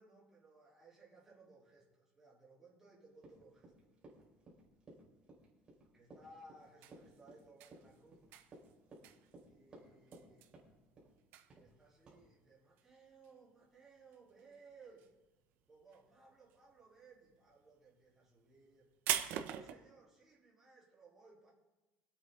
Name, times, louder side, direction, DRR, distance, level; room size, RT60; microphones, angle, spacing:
voice 1, 0.0-3.9 5.9-8.2 9.4-10.5 11.5-15.1 15.7-18.9 19.3-21.5, right 3 dB, 10° right, -7 dB, 4.0 m, -62 dB
Run, 3.2-10.3 10.5-11.1 11.5-11.7 12.1-12.2, right 2 dB, 25° right, 3.7 m, -58 dB
sound 1, 6.6-14.6 14.9-15.5 15.8-19.7, right 11 dB, 65° right, 1.0 m, -43 dB
24.0 x 8.4 x 3.9 m, 1.1 s
cardioid pair, 170°, 4 cm